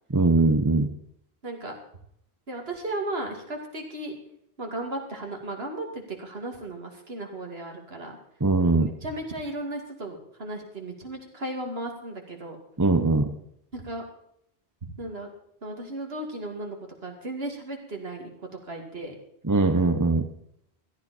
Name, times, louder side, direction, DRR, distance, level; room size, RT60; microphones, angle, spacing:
voice 1, 0.1-0.9 8.4-8.9 12.8-13.3 19.4-20.3, right 3 dB, 20° right, 8 dB, 0.8 m, -21 dB
voice 2, 1.4-1.7 2.5-4.2 4.6-8.2 8.7-12.6 13.7-14.0 15.0-15.3 15.6-16.8 17.0-18.3 18.6-19.1, right 1 dB, 70° right, 2 dB, 2.8 m, -35 dB
16.5 x 12.5 x 4.4 m, 0.72 s
omnidirectional pair, 1.1 m